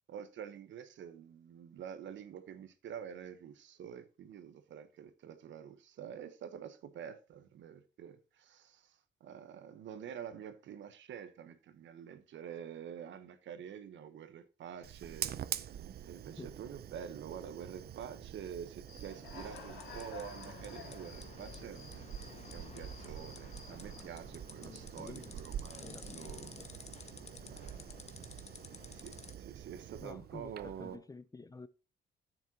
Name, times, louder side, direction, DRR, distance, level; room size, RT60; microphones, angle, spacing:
voice 1, 0.1-15.4 16.1-22.1 22.5-26.5 27.4-27.9 28.9-31.0, right 8 dB, 70° right, 1.0 m, -47 dB
Fire, 14.8-31.0, right 10 dB, 55° right, 0.6 m, -46 dB
Human voice / Cricket, 18.9-24.0, left 5 dB, 85° left, 2.7 m, -52 dB
sound 1, 19.4-29.3, left 5 dB, 35° left, 1.0 m, -53 dB
voice 2, 23.7-24.0 24.6-25.4 25.8-26.7 30.0-31.7, left 3 dB, 20° left, 0.5 m, -50 dB
9.8 x 7.2 x 2.8 m
cardioid pair, 90°, 20 cm